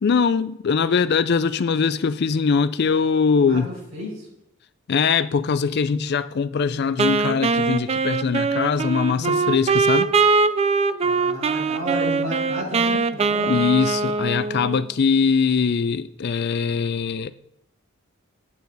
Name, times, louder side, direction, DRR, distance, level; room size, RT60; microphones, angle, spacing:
voice 1, 0.0-3.7 4.9-10.1 13.5-17.3, left 5 dB, 55° left, 0.4 m, -21 dB
Wind instrument woodwind instrument, 7.0-14.9, right 4 dB, 30° right, 0.4 m, -22 dB
voice 2, 11.0-13.6, equal, 75° right, 4.6 m, -31 dB
10.5 x 8.5 x 4.0 m
head